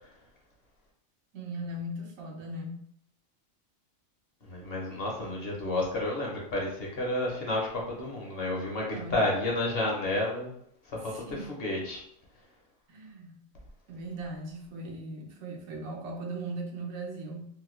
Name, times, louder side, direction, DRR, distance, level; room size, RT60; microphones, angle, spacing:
voice 1, 1.3-2.8 8.8-9.2 11.0-11.5 12.9-13.3 13.9-17.5, right 1 dB, 90° right, 0 dB, 1.2 m, -38 dB
voice 2, 4.4-10.5 10.9-12.0, left 2 dB, 55° left, -2 dB, 0.9 m, -31 dB
3.0 x 2.2 x 3.0 m, 0.66 s
omnidirectional pair, 1.4 m